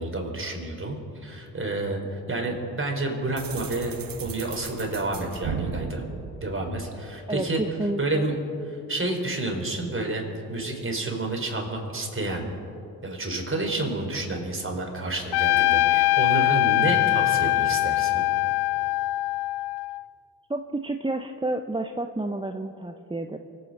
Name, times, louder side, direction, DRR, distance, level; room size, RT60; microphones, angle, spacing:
voice 1, 0.0-2.0 2.3-6.0 6.4-7.6 8.0-8.3 8.7-10.2 10.5-12.5 13.0-18.3, right 2 dB, 30° right, 1 dB, 4.4 m, -29 dB
sound 1, 3.4-7.2, right 6 dB, 55° right, 1.2 m, -36 dB
voice 2, 7.3-8.2 20.5-23.4, right 2 dB, 10° right, 6 dB, 0.9 m, -30 dB
Trumpet, 15.3-20.0, left 18 dB, 70° left, 0.5 m, -22 dB
24.5 x 9.3 x 5.5 m, 2.8 s
hypercardioid pair, 45°, 41 cm